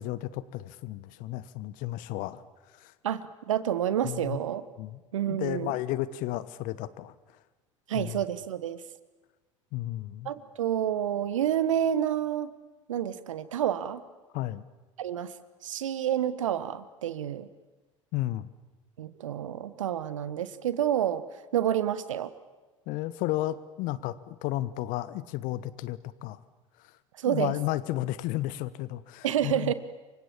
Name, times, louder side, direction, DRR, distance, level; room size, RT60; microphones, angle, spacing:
voice 1, 0.0-2.4 2.8-2.9 4.0-4.4 4.8-5.0 5.4-7.1 7.9-8.2 9.7-10.3 14.3-14.6 18.1-18.5 22.9-26.4 27.2-29.7, left 15 dB, 55° left, 17 dB, 1.2 m, -33 dB
voice 2, 3.0-4.6 5.1-5.7 7.9-8.8 10.2-12.5 12.9-14.0 15.0-15.3 15.6-17.5 19.0-21.2 21.5-22.3 27.2-27.6 29.2-29.7, right 10 dB, 75° right, 15 dB, 1.3 m, -29 dB
28.5 x 24.5 x 7.3 m, 1.2 s
figure-of-eight pair, 70°, 17 cm